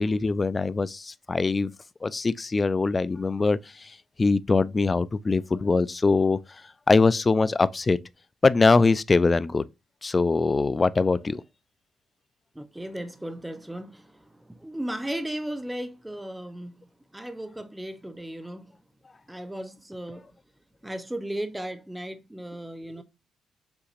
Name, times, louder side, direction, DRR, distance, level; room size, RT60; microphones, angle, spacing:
voice 1, 0.0-1.7 2.0-6.6 6.9-8.0 8.4-9.6 10.0-11.4, left 3 dB, 25° left, 0.3 m, -22 dB
voice 2, 12.6-14.2 14.6-16.8 17.1-18.7 19.3-20.3 20.8-23.0, right 1 dB, 5° right, 0.6 m, -35 dB
6.7 x 2.9 x 2.5 m
cardioid pair, 90°, 0 cm